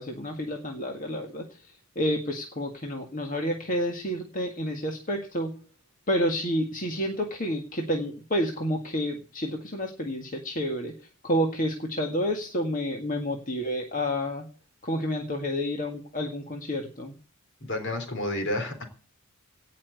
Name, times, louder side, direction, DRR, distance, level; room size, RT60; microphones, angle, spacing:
voice 1, 0.0-5.5 6.1-10.9 11.2-14.5 14.8-17.2, equal, 35° left, 2 dB, 1.9 m, -29 dB
voice 2, 17.6-18.8, left 1 dB, 55° left, 6 dB, 3.7 m, -30 dB
17.5 x 5.9 x 8.3 m, 0.40 s
head